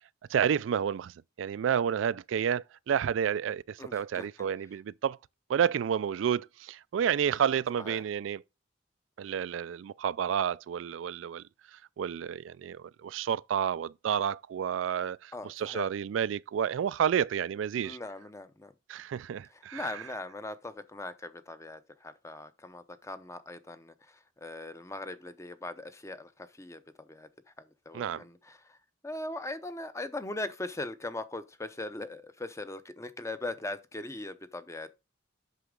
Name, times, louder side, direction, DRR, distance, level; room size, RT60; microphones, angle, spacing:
voice 1, 0.3-5.2 5.5-8.4 9.2-11.4 11.7-18.0 18.9-20.0 27.9-28.2, right 8 dB, 90° right, 0.3 m, -30 dB
voice 2, 3.8-4.5 7.8-8.0 15.3-15.9 17.8-18.7 19.7-27.3 27.6-28.8 29.0-34.9, left 2 dB, 15° left, 0.7 m, -40 dB
8.2 x 6.0 x 3.7 m
head